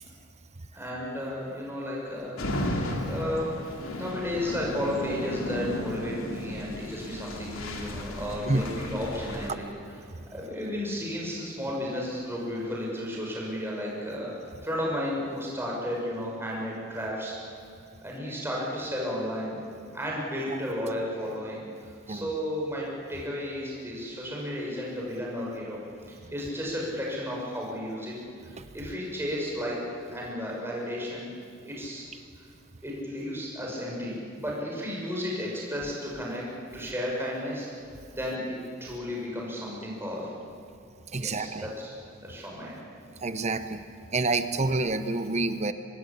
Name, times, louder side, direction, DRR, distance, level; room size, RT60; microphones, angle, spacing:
voice 1, 0.7-2.8 3.1-9.7 10.3-14.3 14.6-17.3 18.0-19.6 19.9-25.8 26.1-28.1 28.4-31.3 31.6-32.1 32.8-36.4 36.7-37.7 38.1-40.3 41.2-41.9 42.2-42.9, equal, 10° right, -3 dB, 6.0 m, -33 dB
sound 1, 2.4-9.5, left 1 dB, 80° left, 2.9 m, -34 dB
voice 2, 41.1-41.7 43.2-43.8 44.1-45.7, right 3 dB, 35° right, 10 dB, 0.9 m, -27 dB
25.0 x 20.0 x 8.6 m, 2.5 s
head